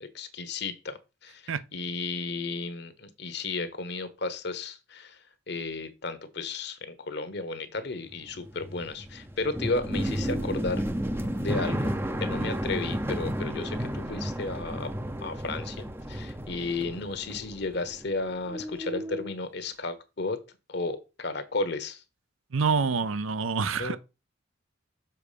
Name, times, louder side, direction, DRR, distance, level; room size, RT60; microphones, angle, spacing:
voice 1, 0.0-5.2 5.5-10.8 11.4-11.9 12.2-14.9 15.2-20.4 20.7-22.0 23.8-24.0, left 3 dB, 55° left, 1.1 m, -33 dB
sound 1, 8.1-18.2 18.5-19.3, equal, 10° right, 0.6 m, -32 dB
voice 2, 22.5-24.0, right 5 dB, 80° right, 0.6 m, -26 dB
7.0 x 4.9 x 5.1 m
head